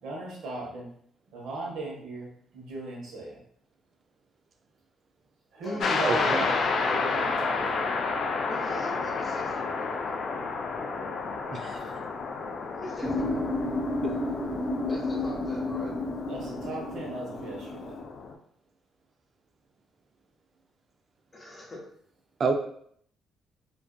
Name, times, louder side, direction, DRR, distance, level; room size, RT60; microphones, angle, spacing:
voice 1, 0.0-0.9 1.3-3.4 5.5-7.9 11.8-11.9 16.3-18.0, right 2 dB, 80° right, -3 dB, 0.9 m, -37 dB
sound 1, 5.8-18.3, left 4 dB, 60° left, 0.3 m, -31 dB
voice 2, 6.0-6.4 11.5-11.8 14.0-14.1 22.4-22.5, right 4 dB, 45° right, 5 dB, 0.4 m, -28 dB
voice 3, 6.9-7.2 8.5-9.9 12.7-13.5 14.9-15.9 21.3-21.8, left 1 dB, 25° left, -2 dB, 0.9 m, -41 dB
sound 2, 13.0-18.0, left 2 dB, 30° right, 1.0 m, -31 dB
2.5 x 2.3 x 2.2 m, 0.64 s
cardioid pair, 90°, 0 cm